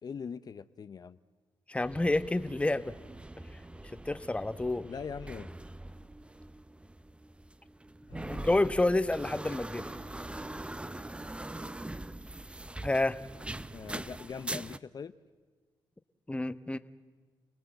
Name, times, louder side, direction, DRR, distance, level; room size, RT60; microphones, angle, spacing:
voice 1, 0.0-1.2 4.8-5.5 8.1-8.5 13.7-15.1, left 6 dB, 50° left, 12 dB, 0.7 m, -42 dB
voice 2, 1.7-2.9 4.1-4.9 8.3-9.8 12.8-13.2 16.3-16.8, left 2 dB, 15° left, 12 dB, 1.0 m, -29 dB
sound 1, 1.8-14.8, right 1 dB, 10° right, 0.7 m, -43 dB
29.5 x 19.0 x 7.8 m, 1.4 s
cardioid pair, 65°, 9 cm